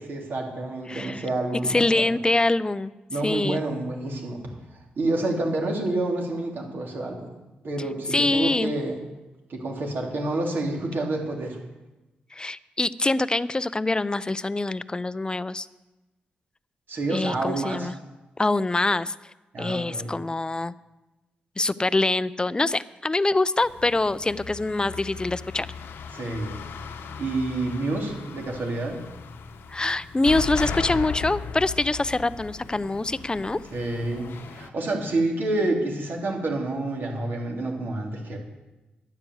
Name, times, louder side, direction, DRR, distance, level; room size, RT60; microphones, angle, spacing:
voice 1, 0.1-2.0 3.1-4.4 5.0-7.3 7.6-9.0 9.5-11.6 16.9-17.9 19.5-20.1 26.1-26.5 27.2-29.0 33.7-38.4, right 2 dB, 65° right, -1 dB, 3.6 m, -28 dB
voice 2, 0.9-1.2 1.7-2.9 3.2-3.6 8.1-8.7 12.3-15.7 17.1-17.9 18.4-19.1 19.6-20.7 21.6-25.7 29.7-33.6, left 2 dB, 25° left, 17 dB, 0.6 m, -24 dB
sound 1, 23.6-34.7, left 6 dB, 80° left, 1.1 m, -37 dB
10.5 x 9.8 x 7.9 m, 1.1 s
cardioid pair, 55°, 4 cm